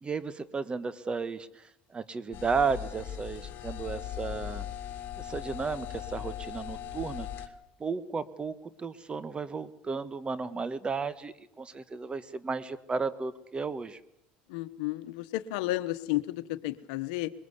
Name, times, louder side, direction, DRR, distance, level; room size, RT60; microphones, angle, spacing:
voice 1, 0.0-4.6 5.2-7.5 7.8-14.0, right 5 dB, 25° right, 13 dB, 1.4 m, -34 dB
sound 1, 2.3-7.5, left 11 dB, 55° left, 2.2 m, -39 dB
voice 2, 14.5-17.3, left 17 dB, 80° left, 13 dB, 1.1 m, -32 dB
22.5 x 21.0 x 8.2 m, 0.80 s
supercardioid pair, 90°, 4 cm